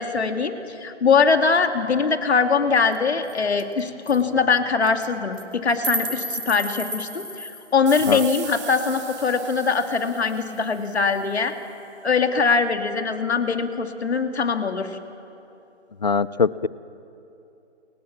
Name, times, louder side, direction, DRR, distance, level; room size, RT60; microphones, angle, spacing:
voice 1, 0.0-11.5 12.0-15.0, left 5 dB, 60° left, 6 dB, 2.2 m, -22 dB
sound 1, 2.9-3.0 3.3-3.4 3.6-3.8 4.1-4.2 4.8-5.1 5.4-7.7, right 2 dB, 80° right, 2.6 m, -31 dB
sound 2, 7.9-11.2, right 10 dB, 25° right, 3.3 m, -39 dB
voice 2, 16.0-16.7, left 5 dB, 35° left, 19 dB, 0.5 m, -22 dB
29.0 x 22.5 x 7.3 m, 2.8 s
hypercardioid pair, 160°, 36 cm